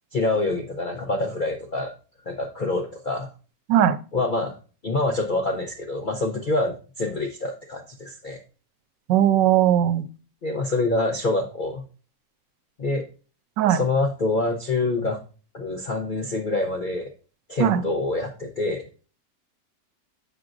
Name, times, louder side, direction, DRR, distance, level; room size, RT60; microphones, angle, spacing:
voice 1, 0.1-1.9 2.3-3.3 4.1-4.5 4.8-8.4 10.4-11.8 12.8-13.1 13.7-15.2 15.5-17.1 17.5-18.9, left 2 dB, 60° left, 2 dB, 0.5 m, -26 dB
voice 2, 9.1-10.1 13.6-13.8 17.6-17.8, right 11 dB, 90° right, 13 dB, 1.3 m, -18 dB
7.3 x 6.0 x 2.5 m, 0.36 s
omnidirectional pair, 1.9 m